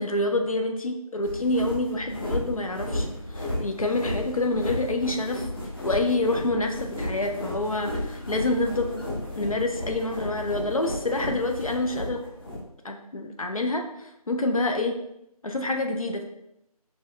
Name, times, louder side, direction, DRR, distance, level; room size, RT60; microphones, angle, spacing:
voice 1, 0.0-3.1 3.4-5.5 5.8-9.1 9.4-12.2 12.8-14.9 15.4-16.2, left 2 dB, 60° left, 4 dB, 0.7 m, -27 dB
sound 1, 1.2-12.6, left 1 dB, 35° left, 1.3 m, -33 dB
5.2 x 3.2 x 2.5 m, 0.82 s
figure-of-eight pair, 165°, 20 cm